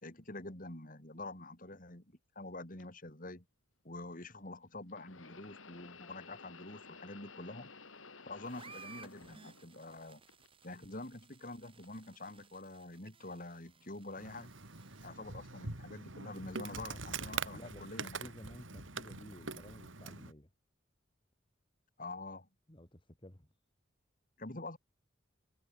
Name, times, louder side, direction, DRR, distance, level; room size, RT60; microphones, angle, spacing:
voice 1, 0.0-3.4 3.8-7.7 8.3-10.2 10.6-14.5 15.0-18.3 22.0-22.5 24.4-24.8, left 2 dB, 45° left, 3.9 m, -46 dB
sound 1, 2.8-2.9 4.9-10.0 10.3-11.1 11.8-12.0 12.9-13.0, left 4 dB, 80° left, 3.9 m, -54 dB
sound 2, 8.4-15.1, right 5 dB, 25° right, 3.9 m, -58 dB
Insect, 14.2-20.3, right 4 dB, 75° right, 3.5 m, -43 dB
voice 2, 17.5-20.5 22.7-23.5, left 1 dB, 25° left, 2.1 m, -53 dB
head